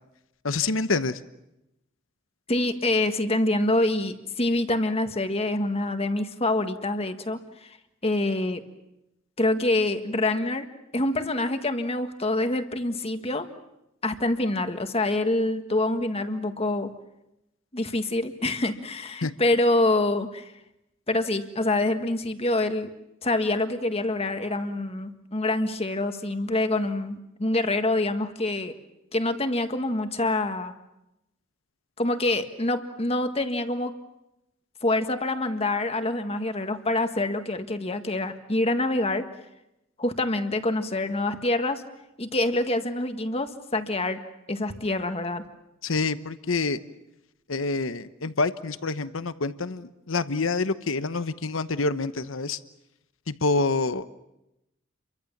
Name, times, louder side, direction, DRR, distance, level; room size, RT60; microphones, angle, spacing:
voice 1, 0.4-1.2 19.2-19.3 45.8-46.8 47.5-52.6 53.3-54.0, left 3 dB, 80° left, 12 dB, 1.0 m, -27 dB
voice 2, 2.5-7.8 8.0-8.6 9.4-10.7 10.9-13.5 14.0-16.9 17.7-20.5 21.1-22.9 23.2-28.7 29.1-30.7 32.0-33.9 34.8-39.3 40.0-41.8 42.2-44.2 44.5-45.4, left 2 dB, 30° left, 8 dB, 1.7 m, -26 dB
29.5 x 24.0 x 7.3 m, 0.90 s
head